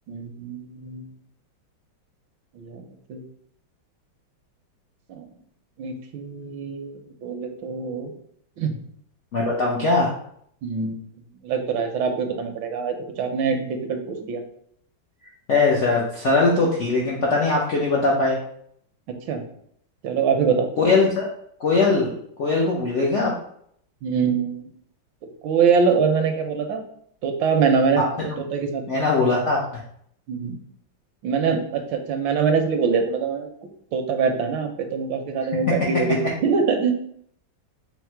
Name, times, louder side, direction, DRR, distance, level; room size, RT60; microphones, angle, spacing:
voice 1, 0.1-1.1 2.5-3.2 5.1-5.2 5.8-8.1 8.6-8.7 10.6-11.0 11.4-14.4 19.1-19.5 20.0-20.7 24.0-24.7 25.4-26.8 27.2-28.0 28.4-28.8 30.3-30.6 31.2-33.5 33.9-36.9, right 5 dB, 80° right, 5 dB, 1.3 m, -24 dB
voice 2, 9.3-10.1 15.5-18.4 20.8-21.3 21.6-22.1 22.4-23.3 28.9-29.6, left 3 dB, 90° left, -3 dB, 0.6 m, -20 dB
4.4 x 2.1 x 4.3 m, 0.68 s
omnidirectional pair, 2.1 m